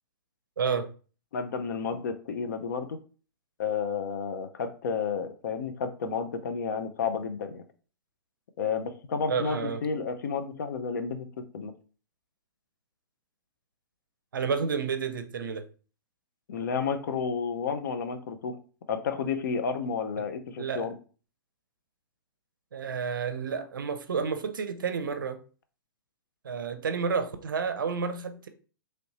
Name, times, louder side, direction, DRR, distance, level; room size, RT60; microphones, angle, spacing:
voice 1, 0.6-0.9 9.3-9.8 14.3-15.6 20.6-20.9 22.7-25.4 26.4-28.5, right 5 dB, 65° right, 8 dB, 0.5 m, -30 dB
voice 2, 1.3-3.0 3.6-7.6 8.6-11.7 16.5-18.6 18.9-21.0, left 5 dB, 55° left, 8 dB, 0.5 m, -31 dB
3.1 x 2.6 x 3.0 m, 0.38 s
figure-of-eight pair, 110°, 12 cm